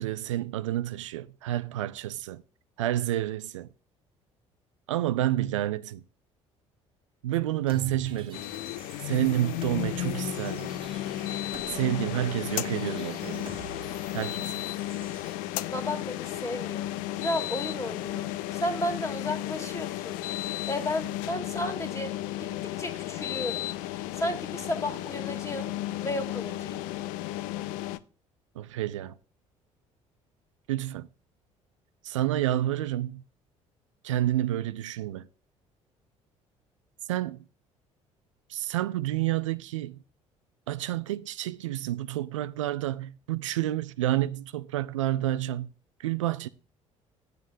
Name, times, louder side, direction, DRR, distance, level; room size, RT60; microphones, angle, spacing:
voice 1, 0.0-2.4 2.8-3.7 4.9-6.0 7.2-8.4 9.0-10.7 11.7-13.5 14.1-14.6 28.6-29.1 30.7-31.1 32.0-33.2 34.0-35.3 37.1-37.4 38.5-40.0 40.7-45.7 46.0-46.5, right 13 dB, 70° right, 0.4 m, -29 dB
sound 1, 7.7-15.3, right 2 dB, 30° right, 1.4 m, -45 dB
sound 2, 8.3-28.0, left 15 dB, 55° left, 0.5 m, -34 dB
voice 2, 15.6-20.2 20.7-25.7 26.0-26.9, left 1 dB, 20° left, 1.9 m, -34 dB
13.0 x 9.1 x 2.6 m
figure-of-eight pair, 50°, 16 cm